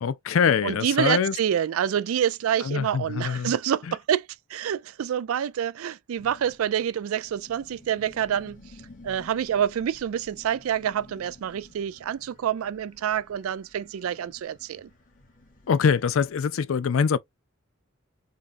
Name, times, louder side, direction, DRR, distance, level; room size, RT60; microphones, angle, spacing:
voice 1, 0.0-1.3 2.6-3.5 15.7-17.2, left 6 dB, 75° left, 0.4 m, -23 dB
voice 2, 0.6-8.6 9.0-14.9, right 9 dB, 85° right, 0.3 m, -27 dB
sound 1, 6.2-16.3, left 2 dB, 40° left, 1.5 m, -52 dB
5.3 x 2.4 x 2.5 m
head